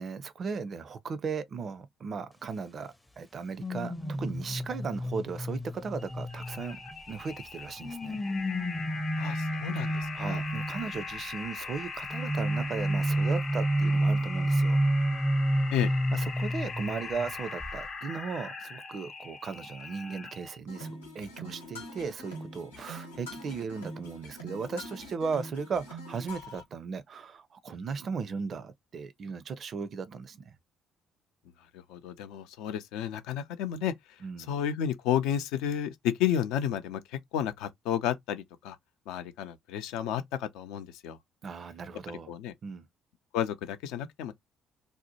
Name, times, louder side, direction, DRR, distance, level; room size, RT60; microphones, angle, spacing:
voice 1, 0.0-8.2 9.9-14.8 16.1-30.5 34.2-34.5 41.4-42.3 42.6-42.9, right 5 dB, 45° right, 0.4 m, -37 dB
sound 1, 3.6-7.2 7.8-11.1 12.1-17.3 17.6-17.9, right 1 dB, 10° left, 0.5 m, -30 dB
sound 2, 6.0-20.6, left 4 dB, 45° left, 0.9 m, -41 dB
voice 2, 9.2-10.4 15.7-15.9 31.7-34.2 34.5-38.8 39.1-41.2 42.1-42.5 43.3-44.3, left 10 dB, 65° left, 0.4 m, -32 dB
sound 3, 20.7-26.6, equal, 85° left, 0.8 m, -44 dB
2.7 x 2.0 x 2.7 m
figure-of-eight pair, 50°, 0 cm